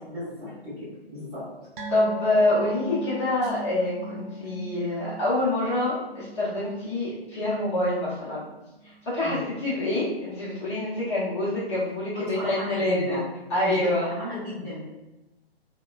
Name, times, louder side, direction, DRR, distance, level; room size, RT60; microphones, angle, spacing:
voice 1, 0.1-1.4 9.2-9.4 12.1-13.2 13.5-14.8, left 1 dB, 10° right, -13 dB, 0.8 m, -35 dB
sound 1, 1.8-8.6 8.9-9.1 9.4-9.5, right 2 dB, 55° right, 0.5 m, -39 dB
voice 2, 1.9-8.4 9.0-13.2 13.5-14.1, left 1 dB, 30° left, -9 dB, 0.7 m, -26 dB
2.8 x 2.1 x 2.3 m, 1.0 s
figure-of-eight pair, 130°, 32 cm